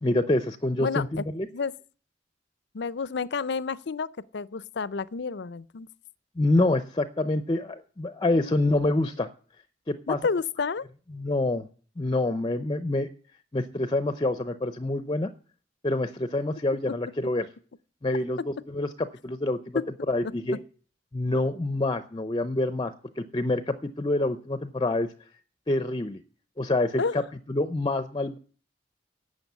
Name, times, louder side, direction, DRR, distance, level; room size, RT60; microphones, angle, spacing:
voice 1, 0.0-1.5 6.4-9.3 9.9-10.2 11.1-11.7 12.0-13.1 13.5-15.3 15.8-17.5 18.0-18.9 19.2-19.8 20.1-20.6 21.1-25.1 25.7-26.2 26.6-27.0 27.5-28.4, left 2 dB, 25° left, 0.6 m, -26 dB
voice 2, 0.8-1.2 1.5-1.7 2.7-5.9 8.3-8.5 10.1-10.9 16.9-17.0 18.4-18.5 27.0-27.2, left 5 dB, 65° left, 0.6 m, -30 dB
11.5 x 7.8 x 9.3 m
head